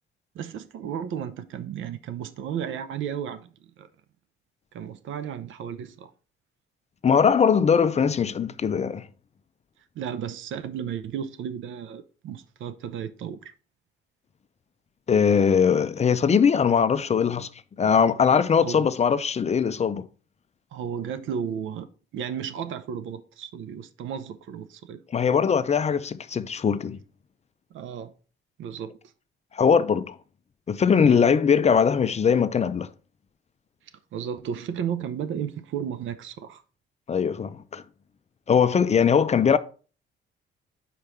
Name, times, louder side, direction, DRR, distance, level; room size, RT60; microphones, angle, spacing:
voice 1, 0.3-3.9 4.7-6.1 9.9-13.5 18.6-18.9 20.7-21.9 22.1-25.0 27.7-28.1 28.6-29.0 30.9-31.2 34.1-36.6, right 8 dB, 75° right, 0.8 m, -34 dB
voice 2, 7.0-9.1 15.1-17.5 17.8-20.1 25.1-27.0 29.5-30.2 30.7-32.9 37.1-37.8 38.5-39.6, left 6 dB, 35° left, 0.5 m, -21 dB
5.1 x 4.7 x 5.6 m
cardioid pair, 90°, 20 cm